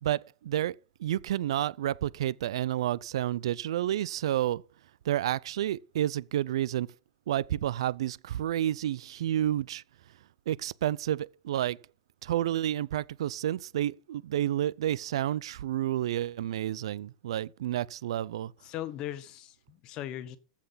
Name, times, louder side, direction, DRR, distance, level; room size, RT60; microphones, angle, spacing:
voice 1, 0.0-4.6 5.0-6.9 7.3-9.8 10.5-11.8 12.2-18.5, right 12 dB, 85° right, 0.5 m, -30 dB
voice 2, 18.6-20.4, left 12 dB, 25° left, 1.1 m, -38 dB
15.0 x 5.8 x 5.7 m
supercardioid pair, 180°, 3 cm